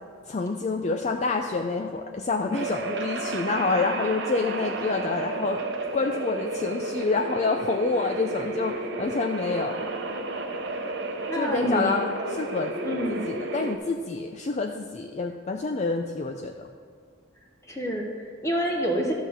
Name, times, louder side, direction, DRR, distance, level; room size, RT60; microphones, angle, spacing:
voice 1, 0.3-5.6 5.9-9.9 11.3-12.7 13.1-16.7, left 3 dB, 35° left, 4 dB, 0.4 m, -28 dB
sound 1, 2.5-13.8, right 2 dB, 55° right, 0.8 m, -32 dB
voice 2, 11.3-11.9 12.8-13.2 17.7-19.1, equal, 15° left, 0 dB, 0.9 m, -27 dB
12.5 x 4.2 x 7.1 m, 2.1 s
head